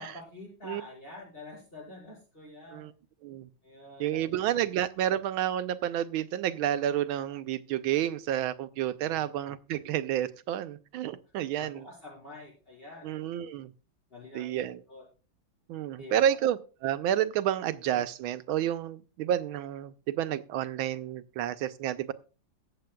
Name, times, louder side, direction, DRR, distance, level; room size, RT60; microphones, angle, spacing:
voice 1, 0.0-2.9 3.6-4.6 9.0-9.3 11.6-13.1 14.1-15.0 16.0-16.4, left 2 dB, 25° left, -3 dB, 5.3 m, -47 dB
voice 2, 4.0-11.8 13.0-13.7 14.3-14.8 15.7-22.1, right 11 dB, 90° right, 12 dB, 1.5 m, -30 dB
22.0 x 7.5 x 2.3 m, 0.34 s
omnidirectional pair, 2.2 m